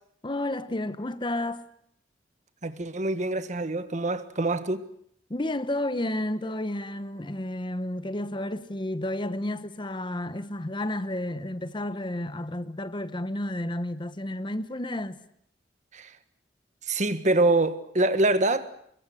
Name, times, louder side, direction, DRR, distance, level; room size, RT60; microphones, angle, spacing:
voice 1, 0.2-1.6 5.3-15.2, left 1 dB, 25° left, 1.0 m, -31 dB
voice 2, 2.6-4.8 15.9-16.2 16.9-18.7, right 2 dB, 40° right, 1.5 m, -25 dB
25.5 x 22.0 x 7.8 m
head